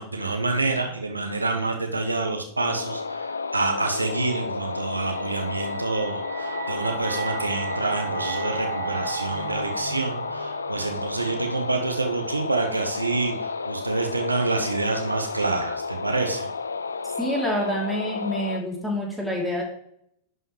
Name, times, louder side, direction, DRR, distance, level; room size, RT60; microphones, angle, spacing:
voice 1, 0.0-16.5, right 3 dB, 80° right, 4 dB, 0.9 m, -27 dB
sound 1, 2.6-18.6, left 4 dB, 75° left, 0.4 m, -32 dB
sound 2, 4.9-12.1, right 7 dB, 50° right, 1.3 m, -37 dB
voice 2, 17.2-19.6, equal, ahead, -3 dB, 2.8 m, -27 dB
11.0 x 5.6 x 3.2 m, 0.71 s
figure-of-eight pair, 90°, 0 cm